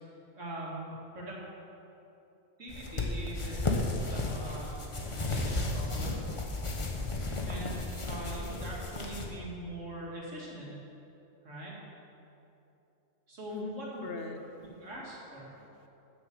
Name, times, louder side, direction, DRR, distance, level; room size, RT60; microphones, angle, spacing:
voice 1, 0.4-1.4 2.6-3.6 4.1-4.8 5.3-6.2 7.5-10.8 11.4-11.7 13.3-14.0 14.4-14.5 14.8-15.5, right 1 dB, 85° right, -5 dB, 2.6 m, -42 dB
sound 1, 2.7-9.3, left 2 dB, 25° left, 1.0 m, -34 dB
voice 2, 13.5-14.7 15.5-15.9, left 4 dB, 60° left, 5 dB, 0.9 m, -43 dB
9.5 x 6.6 x 7.6 m, 2.9 s
omnidirectional pair, 1.2 m